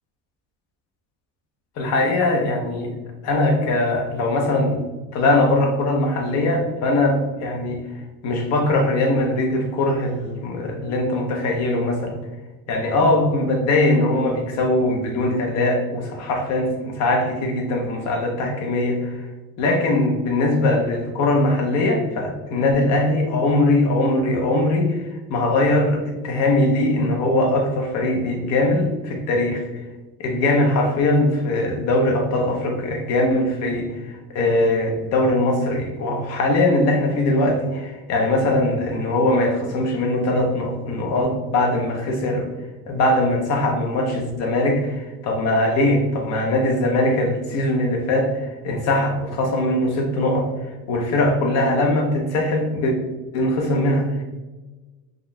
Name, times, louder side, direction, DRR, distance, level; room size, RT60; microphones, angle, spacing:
voice 1, 1.8-2.9 3.2-4.8 5.1-7.8 8.2-12.2 12.7-19.3 19.6-29.7 30.2-42.5 42.9-53.0 53.3-54.2, left 1 dB, 50° left, 2 dB, 0.7 m, -21 dB
3.7 x 2.5 x 2.2 m, 1.2 s
cardioid pair, 130°, 33 cm